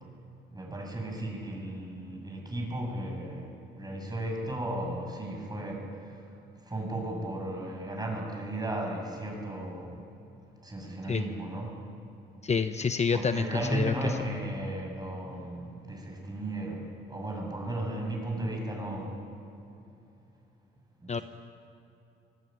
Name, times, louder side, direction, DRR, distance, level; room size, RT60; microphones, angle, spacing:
voice 1, 0.5-6.3 6.6-10.1 10.6-11.8 13.1-19.3 21.0-21.2, right 1 dB, 20° right, 0 dB, 7.9 m, -35 dB
voice 2, 12.4-13.9 21.1-21.2, left 5 dB, 35° left, 9 dB, 0.9 m, -28 dB
23.5 x 19.0 x 9.3 m, 2.8 s
cardioid pair, 90°, 20 cm